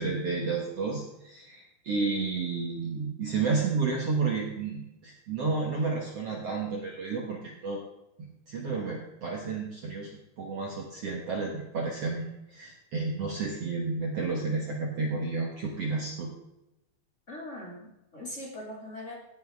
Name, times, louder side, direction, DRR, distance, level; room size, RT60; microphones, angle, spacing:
voice 1, 0.0-7.8 8.2-10.1 10.4-16.3, right 4 dB, 55° right, -1 dB, 1.7 m, -31 dB
voice 2, 17.3-19.1, left 1 dB, 25° left, -2 dB, 1.8 m, -41 dB
18.0 x 8.3 x 3.5 m, 0.92 s
omnidirectional pair, 4.5 m